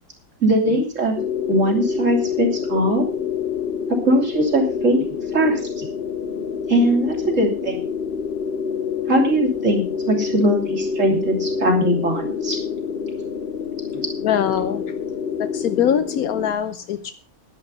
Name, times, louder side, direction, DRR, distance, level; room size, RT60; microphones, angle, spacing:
voice 1, 0.4-1.2 1.5-3.1 4.1-5.8 6.7-7.9 9.1-12.6 13.9-14.1, right 1 dB, 55° right, 1 dB, 3.4 m, -20 dB
sound 1, 1.2-16.5, left 6 dB, 45° left, 1.1 m, -27 dB
voice 2, 14.2-14.9 15.4-17.1, left 9 dB, 80° left, 11 dB, 1.2 m, -22 dB
11.0 x 11.0 x 5.5 m, 0.36 s
omnidirectional pair, 1.5 m